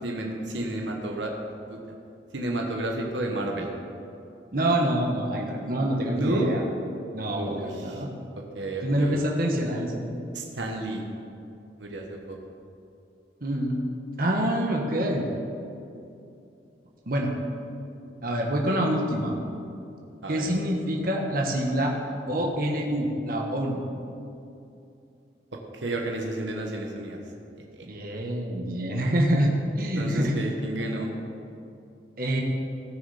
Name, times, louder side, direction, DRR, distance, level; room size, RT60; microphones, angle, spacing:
voice 1, 0.0-1.3 1.7-1.8 2.3-3.7 6.1-6.5 7.4-8.0 8.5-9.2 10.3-11.0 11.8-12.4 20.2-20.5 25.7-27.2 27.7-27.9 30.0-31.1, right 1 dB, 80° right, 1 dB, 1.3 m, -31 dB
voice 2, 4.5-6.6 7.1-8.1 8.8-10.0 13.4-13.8 14.2-15.3 17.1-17.3 18.2-19.4 20.3-21.9 22.3-23.8 27.9-30.4 32.2-32.4, right 1 dB, 50° right, -1 dB, 1.4 m, -26 dB
18.0 x 6.4 x 4.3 m, 2.6 s
head